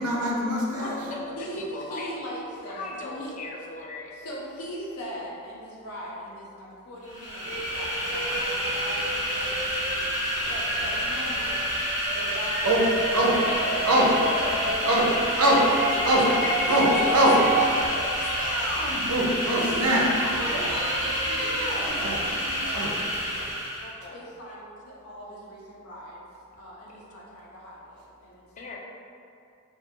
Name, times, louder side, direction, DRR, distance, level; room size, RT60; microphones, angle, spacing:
voice 1, 0.0-1.0 12.6-12.8 13.1-13.3 13.9-14.1 14.9-15.1 15.4-15.6 16.0-16.3 16.7-20.1 20.4-22.2 22.7-22.9, right 1 dB, 85° right, -2 dB, 0.5 m, -24 dB
voice 2, 0.8-2.4 2.7-4.1 13.5-14.7 15.9-18.8 23.8-24.3 26.9-27.0 28.6-28.8, left 2 dB, 35° left, -1 dB, 0.3 m, -38 dB
voice 3, 1.4-3.3 4.2-10.1 10.5-13.9 14.3-15.8 16.7-17.5 19.6-23.6 24.1-26.3 26.6-28.4, equal, 85° left, -5 dB, 0.6 m, -40 dB
sound 1, 7.0-23.9, equal, 15° left, 0.8 m, -29 dB
sound 2, 7.4-17.9, right 1 dB, 30° right, 0.4 m, -31 dB
2.6 x 2.6 x 2.6 m, 2.5 s
head